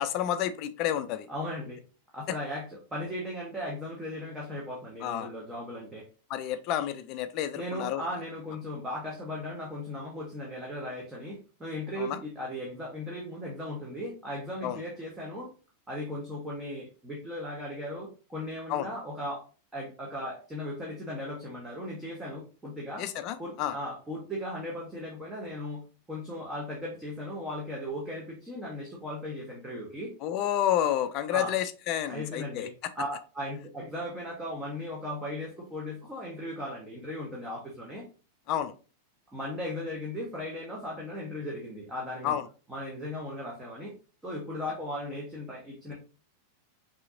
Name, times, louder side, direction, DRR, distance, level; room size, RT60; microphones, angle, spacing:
voice 1, 0.0-1.3 5.0-5.3 6.3-8.0 12.0-12.2 14.6-14.8 18.7-18.9 23.0-23.8 30.2-32.7 38.5-38.7 42.2-42.4, left 11 dB, 40° left, 11 dB, 0.5 m, -30 dB
voice 2, 1.3-1.8 2.1-6.1 7.5-15.5 15.9-19.5 19.7-23.0 23.4-25.8 26.1-30.1 31.3-31.5 32.1-38.1 39.3-42.4 42.7-43.9 44.2-45.9, left 1 dB, 10° right, -3 dB, 1.2 m, -37 dB
5.7 x 2.8 x 2.5 m, 0.35 s
figure-of-eight pair, 90°, 0 cm